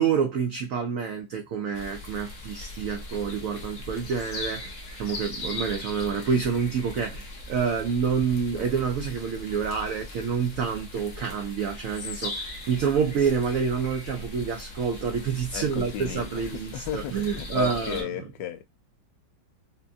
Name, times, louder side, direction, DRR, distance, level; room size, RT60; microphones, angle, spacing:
voice 1, 0.0-18.1, right 6 dB, 80° right, 0.7 m, -28 dB
sound 1, 1.7-18.0, left 2 dB, 55° left, 1.0 m, -39 dB
voice 2, 15.5-16.4 16.7-18.7, left 11 dB, 80° left, 1.2 m, -34 dB
5.4 x 2.2 x 2.5 m
omnidirectional pair, 2.0 m